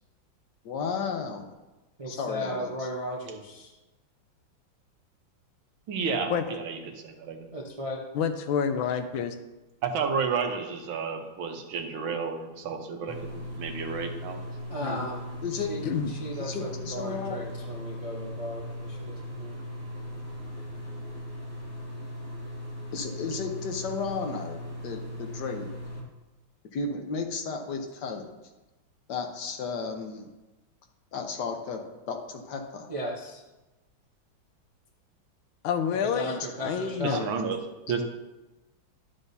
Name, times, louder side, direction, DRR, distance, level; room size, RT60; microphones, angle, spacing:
voice 1, 0.6-1.5 2.1-2.9 15.4-15.7 16.4-17.4 22.9-25.7 26.7-28.2 29.1-30.2 31.1-32.9, left 5 dB, 65° left, 3 dB, 1.4 m, -33 dB
voice 2, 2.0-3.7 7.5-8.0 14.7-15.8 16.1-19.6 32.9-33.4 36.0-37.2, equal, 45° right, -2 dB, 0.4 m, -36 dB
voice 3, 5.9-7.5 9.8-14.4 37.0-37.6 37.9-38.0, right 5 dB, 80° right, 4 dB, 1.7 m, -31 dB
voice 4, 8.1-9.4 14.8-15.0 15.8-16.1 35.6-37.3, left 7 dB, 85° left, 9 dB, 1.4 m, -28 dB
sound 1, 13.1-26.0, equal, 10° left, 2.2 m, -38 dB
12.0 x 7.0 x 2.7 m, 1.1 s
omnidirectional pair, 2.2 m